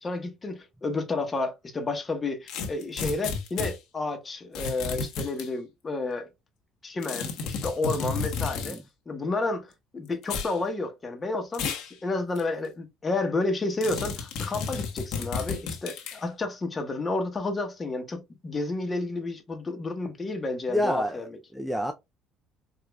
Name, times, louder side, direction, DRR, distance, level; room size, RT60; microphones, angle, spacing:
voice 1, 0.0-6.3 6.8-8.8 9.1-21.4, left 2 dB, 25° left, 0.9 m, -31 dB
sound 1, 2.5-3.8 4.5-5.5 7.0-8.8 10.2-10.6 11.5-11.9 12.4-12.5 13.8-16.2, left 5 dB, 75° left, 1.0 m, -32 dB
voice 2, 20.7-21.3 21.5-21.9, equal, 5° right, 0.4 m, -28 dB
4.9 x 2.5 x 2.2 m
cardioid pair, 130°, 0 cm